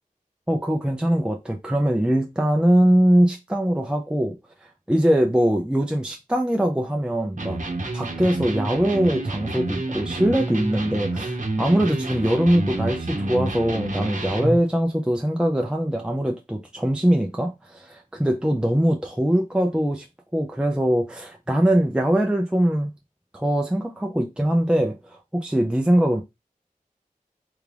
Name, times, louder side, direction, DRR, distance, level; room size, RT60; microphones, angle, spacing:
voice 1, 0.5-4.4 4.9-7.6 7.9-20.1 20.3-22.9 23.3-26.2, right 1 dB, 5° right, 0.5 m, -22 dB
Electric guitar, 7.4-14.7, right 2 dB, 55° right, 0.8 m, -29 dB
3.5 x 2.4 x 3.3 m
wide cardioid pair, 45°, 15 cm